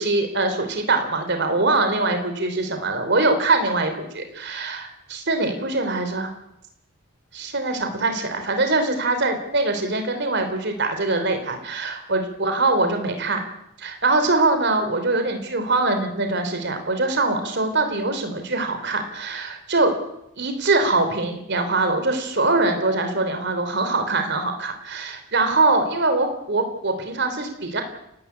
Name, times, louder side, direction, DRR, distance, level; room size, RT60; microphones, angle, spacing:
voice 1, 0.0-6.3 7.3-13.4 13.8-19.9 20.4-27.8, right 2 dB, 55° right, 6 dB, 3.4 m, -23 dB
29.5 x 11.5 x 8.4 m, 0.81 s
head